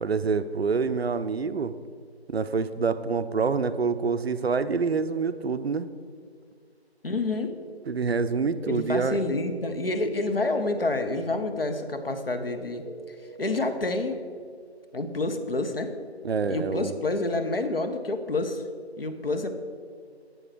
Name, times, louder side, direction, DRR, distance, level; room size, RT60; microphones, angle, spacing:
voice 1, 0.0-1.7 2.3-5.9 7.9-9.3 16.2-16.9, right 5 dB, 70° right, 12 dB, 0.5 m, -26 dB
sound 1, 4.5-5.4 8.2-9.6 12.4-13.4, right 2 dB, 90° left, 1.0 m, -44 dB
voice 2, 7.0-7.5 8.7-12.8 13.4-14.2 14.9-15.9 16.5-18.6 19.0-19.5, left 2 dB, 60° left, 7 dB, 0.8 m, -28 dB
7.8 x 5.3 x 4.8 m, 2.1 s
figure-of-eight pair, 170°, 32 cm